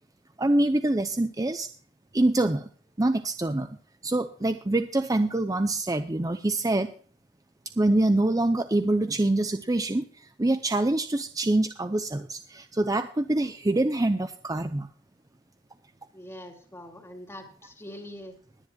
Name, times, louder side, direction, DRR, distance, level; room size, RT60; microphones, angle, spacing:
voice 1, 0.4-1.7 2.1-2.7 3.0-3.8 4.0-6.9 7.8-14.9, right 2 dB, 20° right, 9 dB, 0.6 m, -25 dB
voice 2, 16.1-18.4, left 1 dB, 15° left, 1 dB, 2.5 m, -43 dB
21.0 x 10.5 x 2.3 m, 0.43 s
head